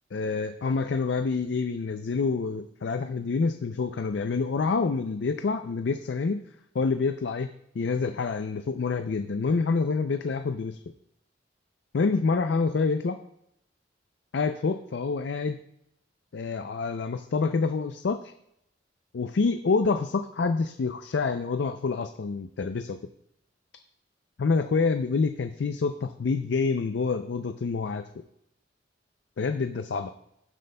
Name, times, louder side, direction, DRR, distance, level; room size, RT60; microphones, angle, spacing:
voice 1, 0.1-6.4 6.7-10.8 11.9-13.2 14.3-15.6 16.3-18.3 19.1-23.0 24.4-28.0 29.4-30.1, left 4 dB, 65° left, 8 dB, 0.4 m, -27 dB
15.0 x 7.7 x 2.2 m, 0.76 s
head